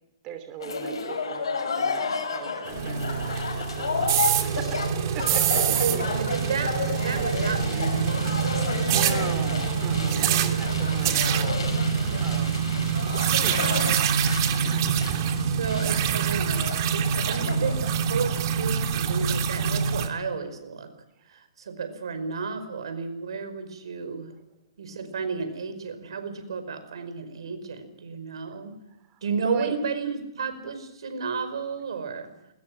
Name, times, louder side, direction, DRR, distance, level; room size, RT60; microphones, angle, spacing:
voice 1, 0.2-2.0 2.3-4.8 5.1-6.2 8.8-11.7 12.2-12.6 13.4-13.8 21.2-21.4 29.1-29.2 29.4-29.7, right 8 dB, 35° right, 8 dB, 3.0 m, -39 dB
sound 1, 0.6-17.9, left 4 dB, 80° left, 6.8 m, -32 dB
sound 2, 2.7-20.1, right 7 dB, 50° right, 3.1 m, -25 dB
voice 2, 5.8-9.1 10.1-10.5 15.3-20.9 21.3-24.3 24.8-28.7 29.2-32.3, right 5 dB, 75° right, 9 dB, 5.2 m, -33 dB
21.5 x 20.5 x 7.6 m, 0.88 s
hypercardioid pair, 130°, 3 cm